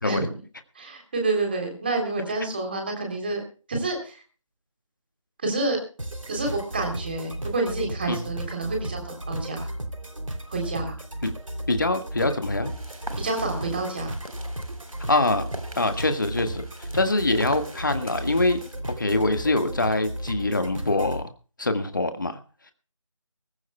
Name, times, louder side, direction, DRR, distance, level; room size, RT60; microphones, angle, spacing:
voice 1, 0.7-3.4 3.7-4.2 5.4-5.8 6.3-9.7 10.5-11.0 13.2-14.1, right 3 dB, 20° right, 2 dB, 3.3 m, -28 dB
sound 1, 6.0-21.2, right 1 dB, 70° right, 3.1 m, -34 dB
voice 2, 11.7-12.7 15.1-15.5 15.7-21.2 21.6-22.4, left 2 dB, 35° left, 8 dB, 1.7 m, -24 dB
sound 2, 12.6-18.8, right 1 dB, 85° right, 3.8 m, -44 dB
23.0 x 15.5 x 2.3 m, 0.37 s
figure-of-eight pair, 165°, 17 cm